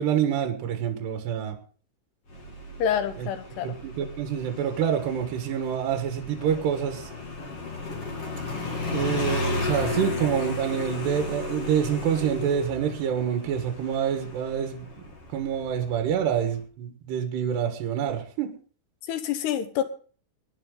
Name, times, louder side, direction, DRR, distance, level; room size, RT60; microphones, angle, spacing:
voice 1, 0.0-1.6 3.6-7.1 8.9-14.9 15.3-18.5, right 8 dB, 80° right, 5 dB, 3.6 m, -27 dB
Motorcycle, 2.3-16.6, left 3 dB, 40° left, 2.7 m, -34 dB
voice 2, 2.8-3.8 19.1-19.8, left 9 dB, 75° left, 9 dB, 3.2 m, -27 dB
22.0 x 10.5 x 3.9 m, 0.41 s
omnidirectional pair, 4.8 m